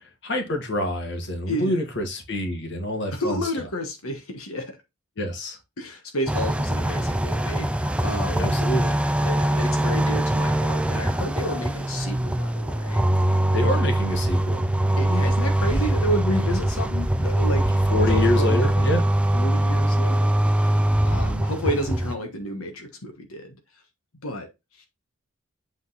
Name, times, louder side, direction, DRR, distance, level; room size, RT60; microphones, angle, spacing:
voice 1, 0.2-3.4 5.2-5.6 8.4-9.0 13.5-14.6 17.9-19.0, left 1 dB, 55° left, 1.6 m, -26 dB
voice 2, 1.5-1.8 3.1-4.8 5.8-8.5 9.2-13.9 15.0-17.8 18.1-18.8 19.3-23.6 24.2-24.5 24.7-24.9, equal, 80° left, 1.3 m, -31 dB
sound 1, 6.3-22.1, right 1 dB, 5° right, 0.3 m, -22 dB
7.8 x 3.9 x 4.0 m
head